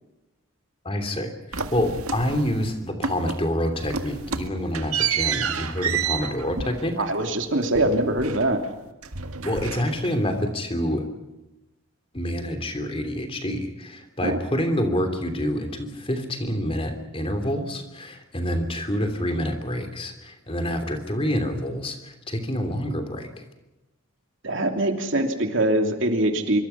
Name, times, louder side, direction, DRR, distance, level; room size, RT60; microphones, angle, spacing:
voice 1, 0.8-7.0 9.4-11.0 12.1-23.3, equal, 25° left, 6 dB, 3.1 m, -27 dB
sound 1, 1.5-2.7 3.0-3.5 3.8-8.7 9.0-10.3, right 7 dB, 90° right, 1.8 m, -30 dB
voice 2, 7.0-8.6 14.2-14.4 24.4-26.6, right 1 dB, 60° right, 4 dB, 2.9 m, -23 dB
26.0 x 24.5 x 5.8 m, 1.0 s
head